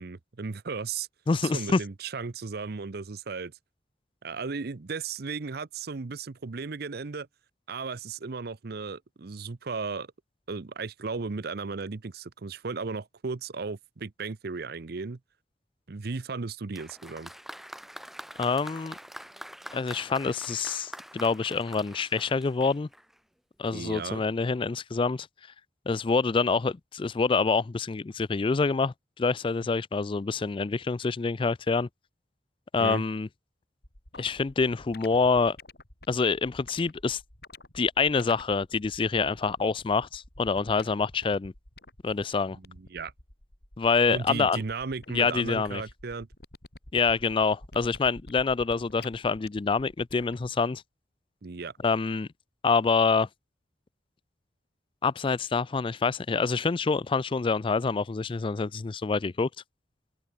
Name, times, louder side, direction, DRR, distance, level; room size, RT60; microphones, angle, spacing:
voice 1, 0.0-1.1 1.4-3.5 4.2-7.3 7.7-10.1 10.5-15.2 15.9-17.3 23.7-24.2 32.8-33.0 42.6-43.1 44.1-46.3 51.4-51.7, right 4 dB, 60° right, 0.7 m, -35 dB
voice 2, 1.3-1.8 18.4-19.0 19.7-22.9 23.6-25.3 25.9-31.9 32.7-33.3 34.2-35.6 36.1-37.2 37.7-41.5 42.0-42.6 43.8-44.6 45.1-45.8 46.9-50.8 51.8-52.3 52.6-53.3 55.0-59.5, left 4 dB, 30° left, 0.4 m, -26 dB
Applause, 16.7-23.2 24.1-24.2, equal, ahead, 1.1 m, -45 dB
sound 1, 33.8-50.5, left 2 dB, 65° left, 5.4 m, -50 dB
head